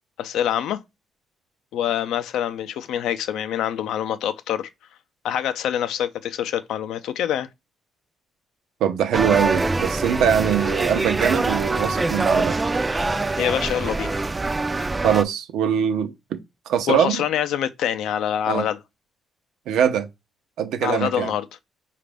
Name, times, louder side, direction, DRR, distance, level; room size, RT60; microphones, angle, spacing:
voice 1, 0.2-0.8 1.7-4.7 5.2-7.5 13.4-14.2 16.9-18.8 20.8-21.4, left 10 dB, 80° left, 0.4 m, -25 dB
voice 2, 8.8-12.6 15.0-16.4 16.7-17.2 18.5-18.6 19.7-20.1 20.6-21.3, right 8 dB, 85° right, 0.6 m, -22 dB
sound 1, 9.1-15.2, right 3 dB, 20° right, 0.3 m, -24 dB
5.0 x 2.5 x 3.3 m
cardioid pair, 90°, 0 cm